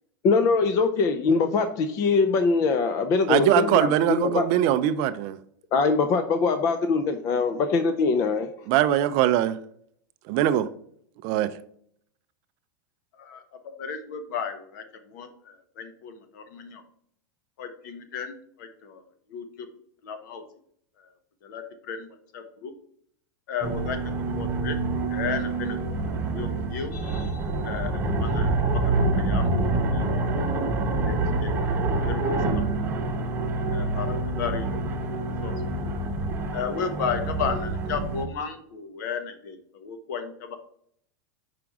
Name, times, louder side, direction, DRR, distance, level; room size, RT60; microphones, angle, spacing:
voice 1, 0.2-4.5 5.7-8.5, left 4 dB, 30° left, 0.4 m, -22 dB
voice 2, 3.3-5.4 8.7-9.6 10.3-10.7 11.2-11.5, right 12 dB, 40° right, 0.4 m, -22 dB
voice 3, 13.8-16.8 17.6-19.0 19.3-19.7 20.0-20.4 21.0-21.1 21.4-22.1 22.3-22.7 23.5-24.8 25.1-26.0 26.2-29.5 29.9-31.5 32.0-32.7 33.7-34.7 35.4-35.5 36.5-40.6, left 6 dB, 65° left, 1.0 m, -34 dB
sound 1, 23.6-38.2, right 2 dB, 20° right, 0.8 m, -26 dB
5.8 x 5.0 x 3.6 m
supercardioid pair, 155°, 11 cm